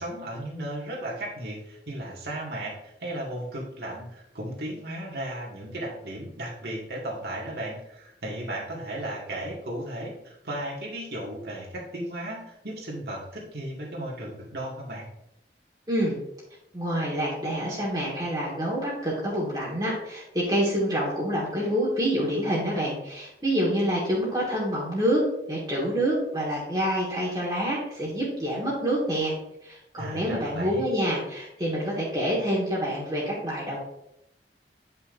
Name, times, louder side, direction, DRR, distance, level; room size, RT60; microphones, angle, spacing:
voice 1, 0.0-15.1 30.0-30.9, right 1 dB, 65° right, -3 dB, 1.9 m, -35 dB
voice 2, 16.7-29.3 29.6-33.8, equal, 25° right, -6 dB, 1.6 m, -27 dB
9.0 x 5.6 x 2.6 m, 0.82 s
head